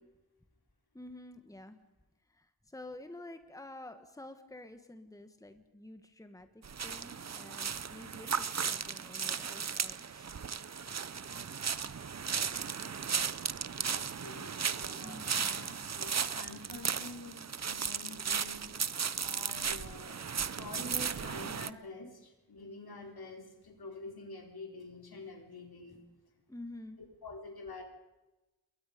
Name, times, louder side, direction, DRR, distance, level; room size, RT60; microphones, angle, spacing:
voice 1, 0.9-1.8 2.3-10.3 15.0-15.6 26.5-27.0, left 1 dB, 10° left, 8 dB, 1.6 m, -49 dB
sound 1, 6.6-21.7, right 6 dB, 45° right, 0.7 m, -36 dB
voice 2, 14.2-18.9 19.2-20.2 20.6-26.0 27.0-27.8, left 3 dB, 75° left, 2 dB, 4.3 m, -47 dB
28.5 x 22.5 x 5.3 m, 1.1 s
wide cardioid pair, 95°, 37 cm